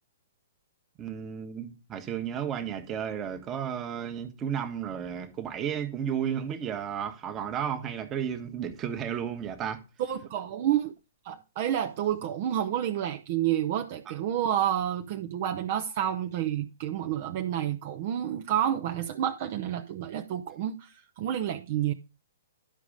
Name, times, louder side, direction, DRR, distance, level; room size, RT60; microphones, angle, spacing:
voice 1, 1.0-9.8 14.1-14.2, right 8 dB, 25° right, 1.3 m, -33 dB
voice 2, 10.0-10.9 11.2-21.9, right 11 dB, 45° right, 0.7 m, -29 dB
11.5 x 5.0 x 4.9 m
hypercardioid pair, 130°, 0 cm